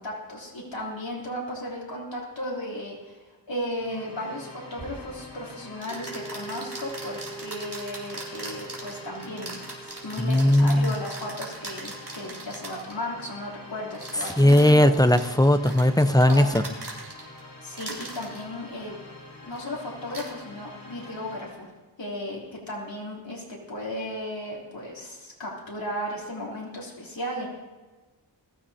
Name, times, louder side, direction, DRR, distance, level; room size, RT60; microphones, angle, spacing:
voice 1, 0.0-3.2 3.5-14.9 16.3-16.5 17.6-18.9 19.4-21.7 22.0-27.5, left 1 dB, 80° left, -5 dB, 3.4 m, -35 dB
sound 1, 3.7-21.7, left 2 dB, 60° left, 4.9 m, -46 dB
sound 2, 4.8-4.9 5.8-13.0 13.9-17.4 17.7-18.4 19.5-19.7 20.1-20.3, right 2 dB, 60° right, 3.9 m, -40 dB
sound 3, 5.9-13.4, right 4 dB, 40° right, 4.4 m, -45 dB
voice 2, 10.2-10.9 14.4-16.6, left 1 dB, 10° left, 10 dB, 0.7 m, -18 dB
21.5 x 14.5 x 2.8 m, 1.3 s
wide cardioid pair, 55°, 45 cm